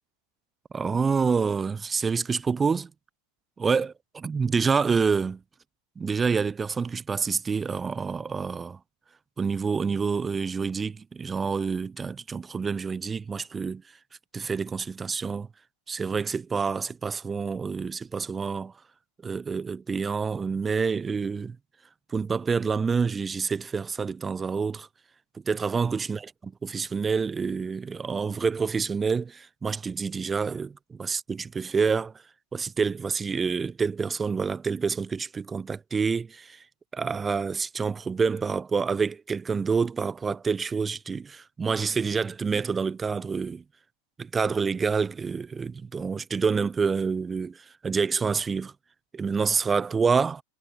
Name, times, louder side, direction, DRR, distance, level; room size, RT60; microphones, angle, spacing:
voice 1, 0.7-2.9 3.6-3.9 4.2-5.4 6.0-8.8 9.4-13.8 14.3-15.5 15.9-18.7 19.2-21.6 22.1-24.9 25.5-26.2 26.6-32.1 32.5-36.6 36.9-43.6 44.2-48.7 49.1-50.4, right 5 dB, 15° right, 0.9 m, -27 dB
figure-of-eight pair, 90°, 0 cm